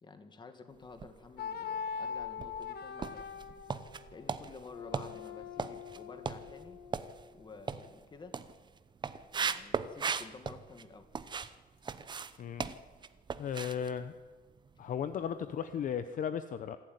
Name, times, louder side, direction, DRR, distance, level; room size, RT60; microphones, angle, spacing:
voice 1, 0.0-3.3 4.1-6.8 7.3-8.4 9.3-11.1, left 4 dB, 25° left, 8 dB, 2.1 m, -51 dB
sound 1, 0.8-1.6 2.0-11.5 11.8-15.0 15.2-15.5 15.9-16.0, right 5 dB, 25° right, 0.8 m, -39 dB
sound 2, 1.4-7.2, left 7 dB, 70° left, 1.7 m, -42 dB
voice 2, 12.4-12.7 13.4-14.1 14.8-16.8, left 8 dB, 50° left, 11 dB, 0.8 m, -35 dB
26.5 x 12.0 x 9.5 m, 1.4 s
cardioid pair, 160°, 17 cm